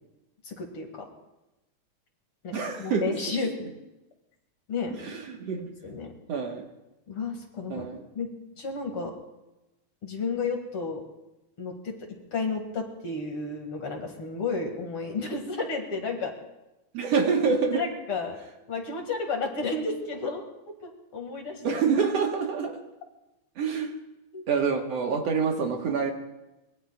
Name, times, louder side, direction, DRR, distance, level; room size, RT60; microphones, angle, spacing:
voice 1, 0.4-1.1 2.4-3.5 4.7-4.9 5.6-6.1 7.1-7.9 8.1-8.3 8.6-9.1 10.0-11.0 11.6-12.0 12.3-16.3 17.7-18.4 18.7-20.4 21.1-21.8 24.3-24.4, left 4 dB, 50° left, 2 dB, 2.7 m, -32 dB
voice 2, 2.5-3.1 5.0-5.6 6.3-6.7 7.7-8.1 16.9-17.9 21.6-22.8 23.6-23.9 24.5-26.1, right 5 dB, 60° right, 2 dB, 2.3 m, -26 dB
24.5 x 21.5 x 2.4 m, 0.98 s
omnidirectional pair, 3.4 m